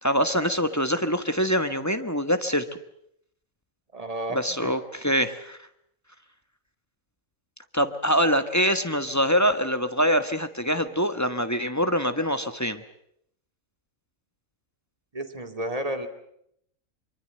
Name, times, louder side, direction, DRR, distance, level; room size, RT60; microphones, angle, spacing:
voice 1, 0.0-2.6 4.3-5.6 7.7-12.8, equal, 15° left, 8 dB, 1.3 m, -24 dB
voice 2, 3.9-4.7 15.1-16.1, right 1 dB, 25° right, 6 dB, 2.4 m, -32 dB
24.5 x 24.0 x 7.8 m, 0.72 s
omnidirectional pair, 1.3 m